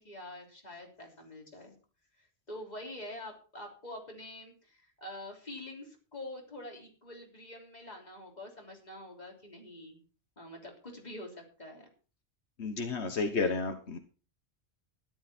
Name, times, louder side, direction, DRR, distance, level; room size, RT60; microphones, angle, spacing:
voice 1, 0.0-1.8 2.2-10.0 10.4-11.8, left 1 dB, 40° left, 0 dB, 3.5 m, -46 dB
voice 2, 12.6-14.0, left 4 dB, 85° left, 6 dB, 1.6 m, -31 dB
13.5 x 11.5 x 4.4 m, 0.37 s
omnidirectional pair, 1.1 m